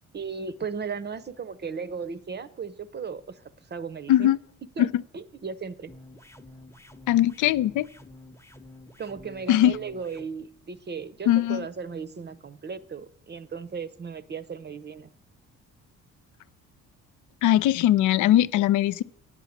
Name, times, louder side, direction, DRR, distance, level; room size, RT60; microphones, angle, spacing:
voice 1, 0.1-3.4 3.7-4.3 4.8-5.9 9.0-15.1, right 5 dB, 35° right, 0.6 m, -36 dB
sound 1, 5.9-10.3, left 1 dB, 10° left, 0.9 m, -49 dB
voice 2, 7.1-7.9 9.5-9.8 11.3-11.6 17.4-19.0, left 13 dB, 80° left, 0.5 m, -20 dB
9.2 x 8.4 x 7.2 m
cardioid pair, 90°, 30 cm